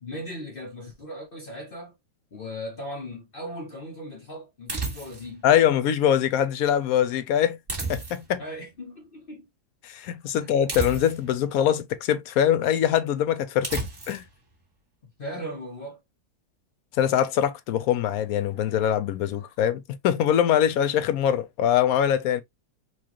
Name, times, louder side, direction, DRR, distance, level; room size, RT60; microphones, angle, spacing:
voice 1, 0.0-2.0 2.3-5.4 8.4-9.5 10.3-10.5 15.2-16.0, equal, 45° left, 0.9 m, -38 dB
sound 1, 4.7-5.4 7.7-8.4 10.7-11.4 13.6-14.3, right 3 dB, 35° right, 1.9 m, -32 dB
voice 2, 5.4-7.6 7.9-8.4 9.8-13.8 14.1-14.2 17.0-22.4, left 10 dB, 70° left, 0.9 m, -23 dB
4.4 x 2.4 x 2.9 m
omnidirectional pair, 1.7 m